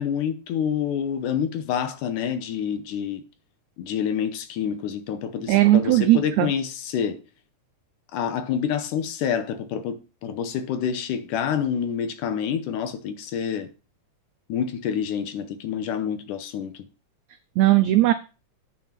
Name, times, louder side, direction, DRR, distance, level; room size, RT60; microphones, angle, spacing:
voice 1, 0.0-3.2 3.8-7.2 8.1-13.7 14.5-16.7, left 8 dB, 75° left, 2.3 m, -27 dB
voice 2, 5.5-6.5 17.6-18.1, right 15 dB, 85° right, 1.6 m, -18 dB
9.1 x 6.0 x 5.7 m
omnidirectional pair, 3.9 m